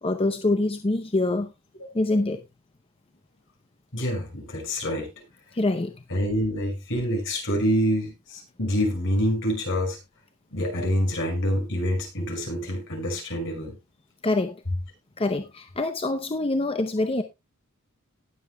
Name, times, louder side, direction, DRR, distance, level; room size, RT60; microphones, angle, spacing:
voice 1, 0.0-1.5 1.9-2.4 5.5-6.0 14.2-14.6 15.2-17.2, left 2 dB, 25° left, 0.7 m, -25 dB
voice 2, 3.9-5.1 6.1-10.0 10.5-13.7, equal, 60° left, 5.9 m, -26 dB
19.0 x 7.7 x 2.2 m
head